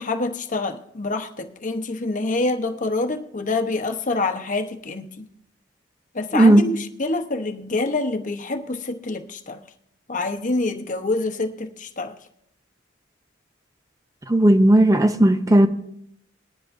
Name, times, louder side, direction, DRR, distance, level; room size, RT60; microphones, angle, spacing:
voice 1, 0.0-5.3 6.1-9.6 10.1-12.2, left 2 dB, 45° left, 1.0 m, -26 dB
voice 2, 6.3-6.6 14.3-15.7, right 1 dB, 20° right, 0.7 m, -15 dB
21.0 x 10.5 x 2.6 m
head